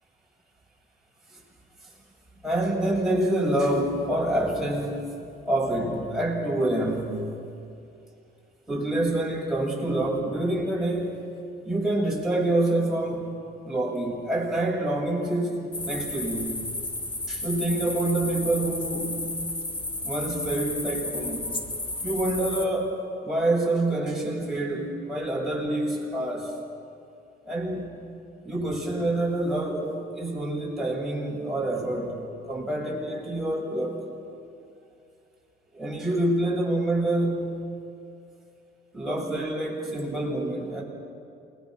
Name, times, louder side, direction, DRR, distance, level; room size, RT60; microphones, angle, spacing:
voice 1, 2.4-5.0 5.4-7.3 8.7-11.2 11.6-16.5 17.3-19.3 20.0-21.6 22.0-26.5 27.5-27.9 28.4-32.2 32.5-34.0 35.7-37.8 38.9-40.8, right 1 dB, ahead, -4 dB, 7.8 m, -27 dB
sound 1, 15.7-22.7, left 2 dB, 25° left, 2.2 m, -33 dB
28.5 x 21.5 x 6.3 m, 2.5 s
cardioid pair, 90°, 20 cm